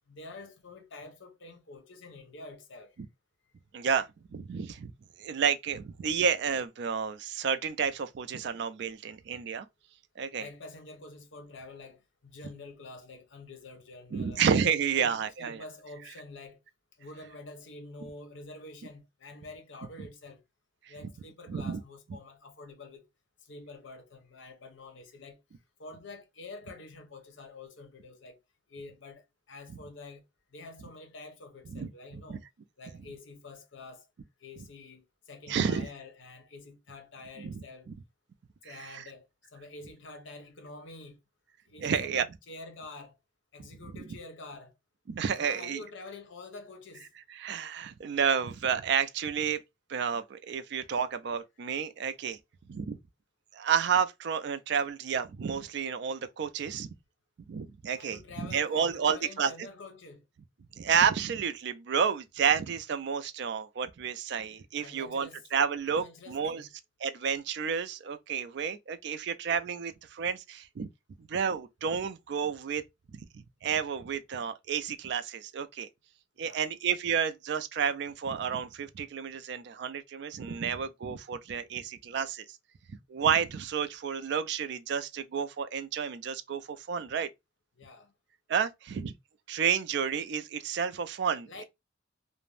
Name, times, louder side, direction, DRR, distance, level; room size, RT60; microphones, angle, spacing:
voice 1, 0.1-3.0 10.4-14.5 14.9-16.6 17.0-20.4 20.9-23.0 23.4-25.4 25.8-28.4 28.7-30.2 30.5-32.4 32.8-34.1 34.4-37.9 38.6-39.3 39.5-41.2 41.7-43.2 43.5-44.7 45.4-47.1 58.0-60.2 64.8-65.5 65.9-66.7 76.4-76.7 87.8-88.1 91.5-91.6, left 3 dB, 65° left, 0.7 m, -47 dB
voice 2, 3.7-4.9 5.2-9.7 10.2-10.5 14.1-15.6 20.9-21.0 21.5-21.8 31.7-32.4 35.5-35.9 37.4-37.9 38.6-39.0 41.8-42.3 43.6-43.7 45.1-45.8 47.4-49.6 49.9-52.4 52.7-53.0 53.5-56.9 57.5-59.5 60.8-66.6 67.0-70.9 71.3-72.8 73.1-75.9 76.4-82.5 83.1-87.3 88.5-89.1 89.5-91.6, right 7 dB, 55° right, 0.3 m, -31 dB
2.5 x 2.0 x 3.2 m
head